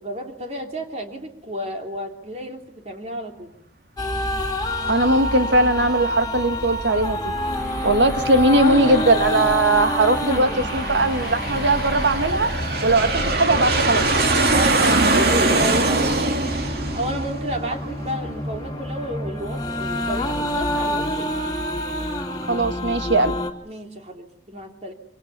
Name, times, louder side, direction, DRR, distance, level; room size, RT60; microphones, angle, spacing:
voice 1, 0.0-3.5 10.3-11.0 14.5-16.5 16.9-21.3 23.6-24.9, equal, 35° right, 3 dB, 3.0 m, -32 dB
sound 1, 4.0-23.5, left 1 dB, 20° left, 2.5 m, -28 dB
voice 2, 4.9-7.3 7.8-12.5 12.8-14.2 22.5-23.3, right 2 dB, 80° right, 8 dB, 2.0 m, -19 dB
Aircraft, 7.4-18.6, right 2 dB, 55° right, 2.8 m, -24 dB
26.5 x 25.5 x 7.0 m, 0.73 s
head